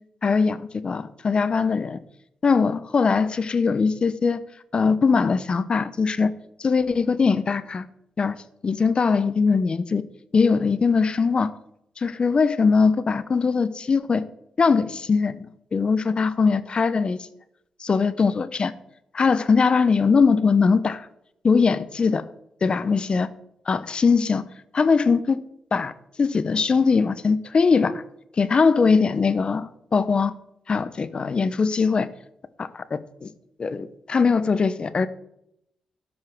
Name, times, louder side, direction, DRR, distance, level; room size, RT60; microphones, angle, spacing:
voice 1, 0.2-2.0 2.4-4.4 4.7-6.3 6.6-7.9 8.2-8.4 8.6-10.0 10.3-11.5 12.0-14.2 14.6-15.5 15.7-17.2 17.8-18.7 19.1-21.1 21.4-22.2 22.6-23.3 23.7-24.4 24.7-25.4 25.7-25.9 26.2-28.0 28.4-30.3 30.7-32.1 32.6-33.3 33.6-35.1, left 5 dB, 50° left, 14 dB, 0.9 m, -21 dB
13.0 x 5.5 x 6.1 m, 0.79 s
supercardioid pair, 50°, 2 cm